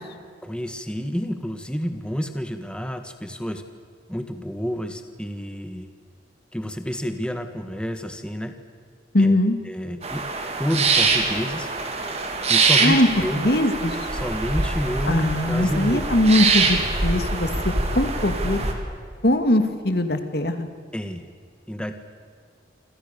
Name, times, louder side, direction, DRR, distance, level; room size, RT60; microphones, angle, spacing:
voice 1, 0.4-3.6 4.1-5.9 6.5-8.5 9.2-9.3 9.6-10.2 10.6-11.7 12.5-13.5 14.1-16.1 20.9-21.3 21.7-21.9, equal, 5° left, 7 dB, 1.6 m, -29 dB
voice 2, 9.1-9.6 12.8-13.1 13.4-14.0 15.1-18.6 19.2-20.7, left 1 dB, 60° left, 8 dB, 2.5 m, -21 dB
sound 1, 10.0-18.7, right 3 dB, 35° right, 3.6 m, -24 dB
28.5 x 26.5 x 6.9 m, 2.1 s
head